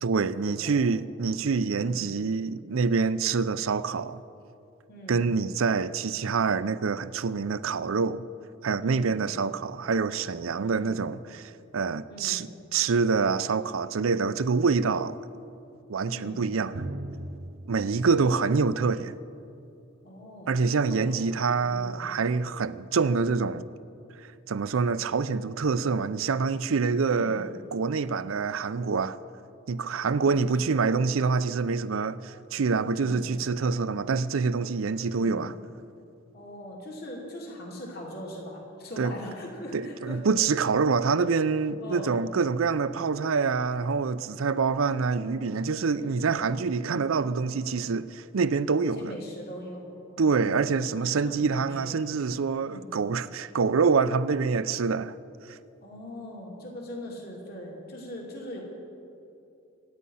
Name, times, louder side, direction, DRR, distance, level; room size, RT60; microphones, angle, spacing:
voice 1, 0.0-4.2 5.1-8.2 8.6-15.2 15.9-16.8 17.7-19.1 20.5-23.7 24.2-29.2 29.7-35.5 39.0-39.1 39.7-49.1 50.2-55.2 55.5-55.6, right 4 dB, 85° right, 0.5 m, -26 dB
voice 2, 1.8-2.1 4.9-5.3 8.8-9.2 10.6-11.0 12.1-12.5 16.1-16.4 17.8-18.6 20.0-20.5 20.8-21.3 21.7-22.0 27.0-27.5 30.0-30.5 32.9-33.3 35.0-35.4 36.3-40.2 41.8-42.2 44.8-45.5 45.9-46.4 46.7-47.1 48.8-50.6 50.9-52.0 52.6-53.0 55.8-58.6, equal, 50° left, 2.8 m, -42 dB
Drum, 16.7-20.3, right 1 dB, 55° right, 0.8 m, -40 dB
25.0 x 9.6 x 5.6 m
head